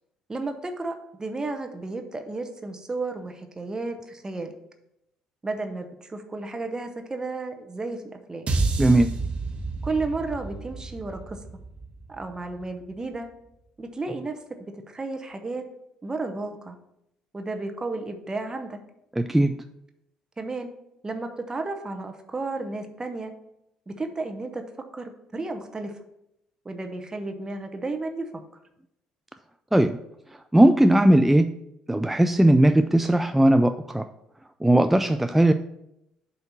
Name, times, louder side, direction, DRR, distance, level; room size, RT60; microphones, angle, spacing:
voice 1, 0.3-4.5 5.4-8.5 9.8-11.4 12.1-13.3 13.8-14.4 14.9-15.6 16.0-16.8 17.3-18.8 20.4-20.7 21.0-23.3 23.9-24.6 24.9-25.9 26.6-28.3, right 3 dB, 25° right, 5 dB, 0.8 m, -32 dB
sound 1, 8.5-12.8, right 3 dB, 40° right, 1.1 m, -30 dB
voice 2, 8.8-9.1 19.2-19.5 29.7-30.0 30.5-31.5 31.9-34.1 34.6-35.5, right 1 dB, 5° right, 8 dB, 0.3 m, -18 dB
7.8 x 2.7 x 5.8 m, 0.82 s
figure-of-eight pair, 50°, 3 cm